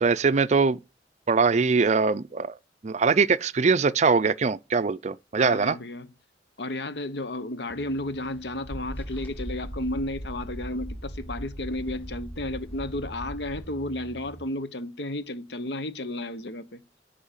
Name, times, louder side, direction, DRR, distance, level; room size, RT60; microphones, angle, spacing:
voice 1, 0.0-0.8 1.3-2.5 2.8-5.8, right 4 dB, 40° right, 0.5 m, -22 dB
voice 2, 5.4-6.1 6.6-16.8, left 1 dB, 70° left, 1.0 m, -33 dB
sound 1, 7.7-14.4, right 1 dB, 10° left, 2.3 m, -47 dB
sound 2, 8.7-13.7, equal, 15° right, 3.2 m, -38 dB
10.5 x 5.5 x 7.4 m
head